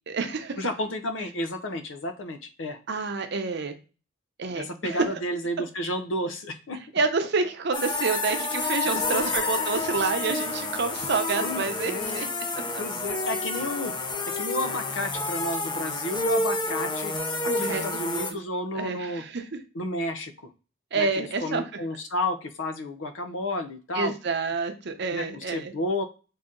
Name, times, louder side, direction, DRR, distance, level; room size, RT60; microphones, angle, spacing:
voice 1, 0.1-0.6 2.9-3.7 4.4-5.2 6.9-12.3 12.7-12.8 17.5-18.4 18.7-19.6 20.9-21.7 23.9-25.7, right 4 dB, 60° right, 7 dB, 0.7 m, -28 dB
voice 2, 0.6-2.8 4.6-6.8 8.8-9.3 11.4-12.2 12.8-13.9 14.4-17.1 17.6-19.2 19.7-20.3 20.9-24.1 25.1-26.0, left 1 dB, 90° left, 8 dB, 0.7 m, -31 dB
sound 1, 7.7-18.3, left 2 dB, 25° left, 0.5 m, -29 dB
3.9 x 2.7 x 3.7 m, 0.34 s
head